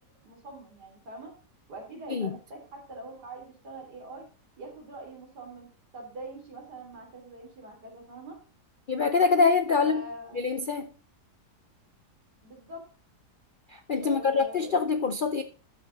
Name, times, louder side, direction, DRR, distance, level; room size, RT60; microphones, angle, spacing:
voice 1, 0.2-1.3 1.7-4.3 4.6-8.4 9.8-10.6 12.4-12.8 14.0-14.7, right 1 dB, 80° right, 3.9 m, -43 dB
voice 2, 8.9-10.0 10.3-10.9 13.7-15.4, left 4 dB, 60° left, 0.5 m, -25 dB
12.5 x 5.9 x 4.0 m
omnidirectional pair, 1.7 m